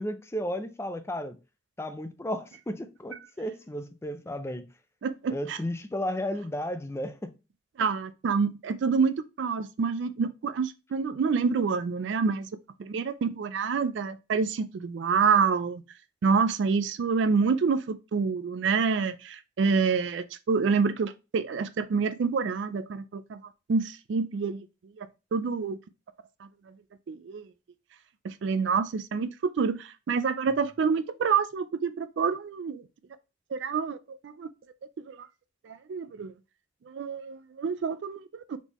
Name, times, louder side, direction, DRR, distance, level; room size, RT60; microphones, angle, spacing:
voice 1, 0.0-1.4 1.8-4.6 5.3-7.3, equal, 15° left, 0.4 m, -33 dB
voice 2, 5.0-5.6 7.8-12.5 12.8-15.8 16.2-23.4 23.7-24.7 25.0-25.8 27.1-27.5 28.2-32.8 33.5-34.0 34.2-34.5 35.1-35.2 35.6-36.3 36.9-38.4, right 5 dB, 70° right, 0.4 m, -27 dB
4.2 x 3.5 x 2.9 m
head